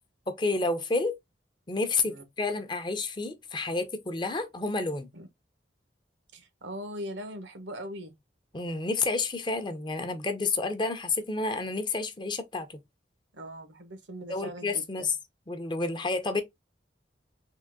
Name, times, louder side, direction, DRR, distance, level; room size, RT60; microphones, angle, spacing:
voice 1, 0.3-1.2 1.7-5.1 8.5-12.8 14.3-15.1 15.5-16.4, left 3 dB, 25° left, 0.6 m, -30 dB
voice 2, 6.3-8.1 13.3-15.1, equal, 80° right, 1.0 m, -40 dB
3.8 x 2.9 x 3.4 m
head